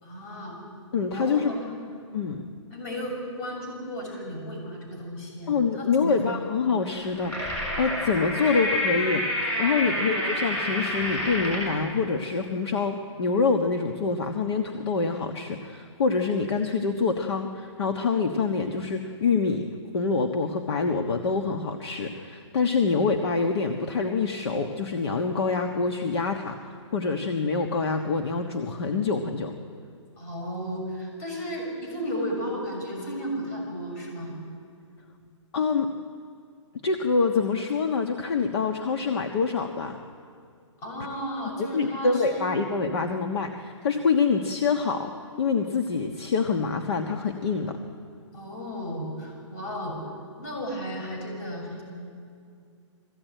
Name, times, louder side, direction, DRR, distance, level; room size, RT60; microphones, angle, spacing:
voice 1, 0.0-0.6 1.1-1.8 2.7-6.1 9.9-10.0 30.2-34.3 40.8-42.5 48.3-50.0 50.4-51.8, equal, 30° left, 1 dB, 6.6 m, -34 dB
voice 2, 0.9-1.5 2.1-2.4 5.5-9.3 9.6-19.6 19.9-29.5 35.5-35.9 36.8-40.0 41.6-47.8, left 4 dB, 55° left, 5 dB, 1.4 m, -26 dB
sound 1, 6.9-11.8, left 1 dB, 10° left, 6.9 m, -28 dB
21.5 x 15.5 x 9.1 m, 2.3 s
hypercardioid pair, 165°, 16 cm